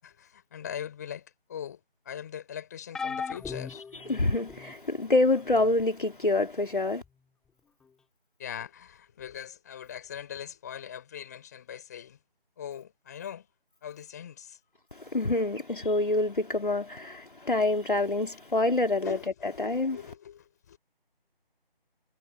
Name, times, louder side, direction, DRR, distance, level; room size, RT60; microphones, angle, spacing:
voice 1, 0.0-3.8 8.4-12.2 12.6-13.5 13.8-14.6 18.2-18.3 19.0-20.8, left 9 dB, 20° left, 6.2 m, -41 dB
sound 1, 2.9-4.7 5.5-5.7 7.0-7.1, left 5 dB, ahead, 3.1 m, -37 dB
voice 2, 4.1-7.0 15.0-19.2 19.4-20.0, left 2 dB, 55° left, 3.4 m, -26 dB
figure-of-eight pair, 160°, 30 cm